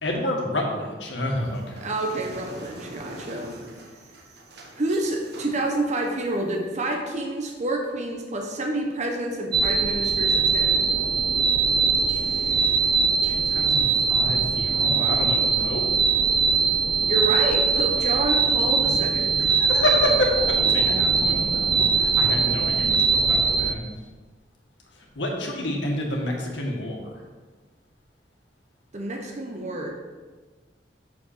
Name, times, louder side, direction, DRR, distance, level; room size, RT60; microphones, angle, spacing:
voice 1, 0.0-1.7 12.1-12.8 13.2-15.8 19.4-23.8 25.1-27.1, left 1 dB, 90° left, 0 dB, 1.7 m, -29 dB
sound 1, 1.4-6.7, right 1 dB, 65° right, 1.2 m, -43 dB
voice 2, 1.8-3.5 4.7-10.9 17.1-19.3 28.9-29.9, right 2 dB, 40° right, 1 dB, 1.0 m, -28 dB
sound 2, 9.5-23.7, right 5 dB, 25° right, 0.4 m, -21 dB
6.5 x 5.1 x 6.7 m, 1.4 s
head